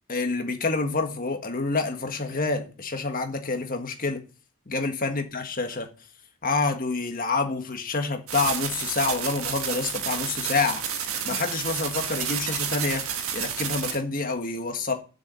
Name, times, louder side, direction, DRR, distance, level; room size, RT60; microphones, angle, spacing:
voice 1, 0.1-4.2 4.7-5.9 6.4-14.9, left 3 dB, 40° left, 1.6 m, -28 dB
sound 1, 8.3-14.0, right 8 dB, 70° right, 1.6 m, -30 dB
7.1 x 6.8 x 7.1 m
head